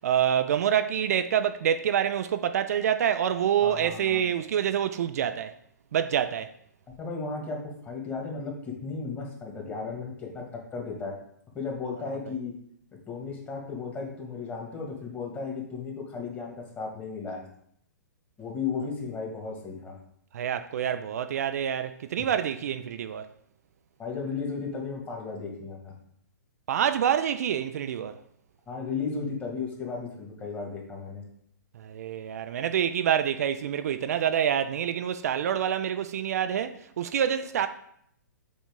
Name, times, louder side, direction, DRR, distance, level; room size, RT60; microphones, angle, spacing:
voice 1, 0.0-5.5 5.9-6.5 20.3-23.3 26.7-28.2 31.8-37.7, right 9 dB, 55° right, 0.4 m, -27 dB
voice 2, 3.6-4.2 7.0-11.1 11.5-12.5 13.1-17.4 18.4-19.9 22.2-22.3 24.0-25.9 28.7-31.2, left 4 dB, 20° left, 1.8 m, -35 dB
7.3 x 4.1 x 3.6 m
figure-of-eight pair, 120°, 10 cm